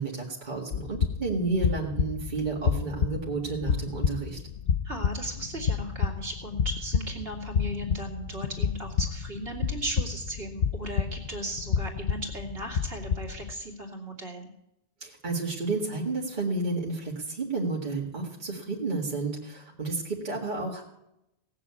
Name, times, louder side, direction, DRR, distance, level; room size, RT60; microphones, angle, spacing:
voice 1, 0.0-4.4 15.0-20.8, right 3 dB, 50° right, -3 dB, 2.1 m, -31 dB
sound 1, 0.7-13.5, left 7 dB, 80° left, 1.0 m, -30 dB
voice 2, 4.8-14.5, right 1 dB, 70° right, 0 dB, 2.7 m, -36 dB
17.5 x 6.9 x 8.4 m, 0.85 s
omnidirectional pair, 1.1 m